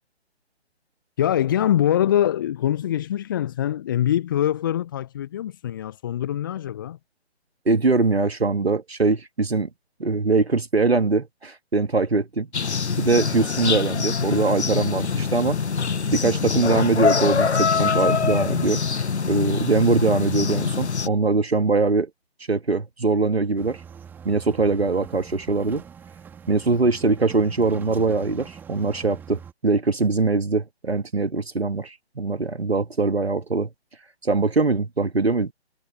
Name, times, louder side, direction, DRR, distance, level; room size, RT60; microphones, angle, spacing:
voice 1, 1.2-7.0, left 11 dB, 20° left, 1.1 m, -23 dB
voice 2, 7.7-9.7 10.0-12.5 13.0-15.6 16.1-18.8 19.3-22.1 22.5-23.8 24.2-25.8 26.5-33.7 34.2-35.5, right 3 dB, 65° right, 2.3 m, -22 dB
sound 1, 12.5-21.1, left 5 dB, 80° left, 0.6 m, -24 dB
sound 2, 23.6-29.5, right 7 dB, 5° right, 2.7 m, -43 dB
figure-of-eight pair, 145°, 33 cm